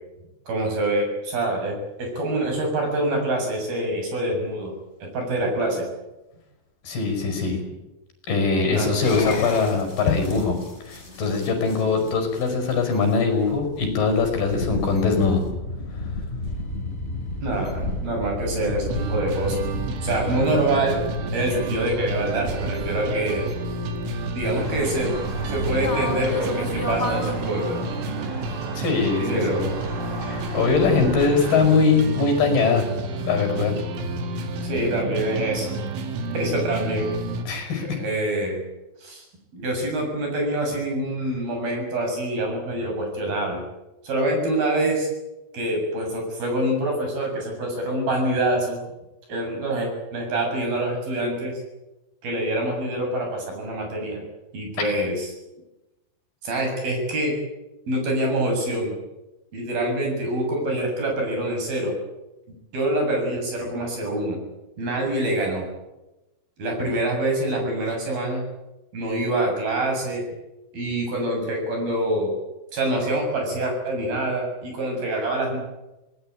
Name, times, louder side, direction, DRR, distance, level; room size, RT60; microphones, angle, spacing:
voice 1, 0.5-4.7 5.1-5.9 8.7-8.9 17.4-19.6 20.0-21.0 21.3-23.5 24.3-25.1 25.5-27.9 29.1-29.7 30.9-31.0 34.6-35.7 36.3-37.1 37.8-38.6 39.0-39.3 39.5-43.6 44.0-45.1 45.5-48.8 49.3-51.6 52.2-54.2 54.5-55.3 56.4-57.4 57.9-58.9 59.5-62.0 62.7-64.4 64.8-65.7 66.6-68.4 68.9-70.2 70.7-72.3 72.7-75.6, right 1 dB, 50° right, 2 dB, 8.8 m, -25 dB
voice 2, 6.8-7.6 8.3-10.6 10.9-15.4 15.9-16.1 28.8-29.7 30.2-32.9 33.2-33.7 37.5-38.0, left 4 dB, 55° left, 6 dB, 7.2 m, -22 dB
sound 1, 9.0-27.3, left 2 dB, 15° left, 3.9 m, -33 dB
sound 2, 18.9-37.5, right 2 dB, 85° right, 4.6 m, -30 dB
sound 3, 24.6-31.8, right 2 dB, 20° right, 2.1 m, -35 dB
26.0 x 19.0 x 9.0 m, 1.0 s
omnidirectional pair, 5.4 m